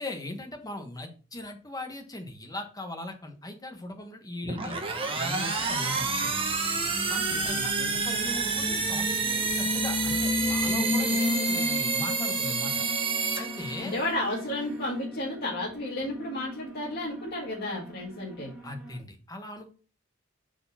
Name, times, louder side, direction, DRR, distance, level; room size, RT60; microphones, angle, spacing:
voice 1, 0.0-4.8 5.1-6.5 7.1-12.9 13.4-14.0 18.6-19.7, left 1 dB, 20° left, 4 dB, 1.4 m, -39 dB
sound 1, 4.4-14.1, right 4 dB, 25° right, 1.3 m, -29 dB
Alarm, 5.6-19.0, left 2 dB, 5° right, 2.6 m, -35 dB
voice 2, 7.2-8.0 13.8-18.5, left 1 dB, 50° left, -4 dB, 1.8 m, -33 dB
6.4 x 4.8 x 4.3 m, 0.37 s
head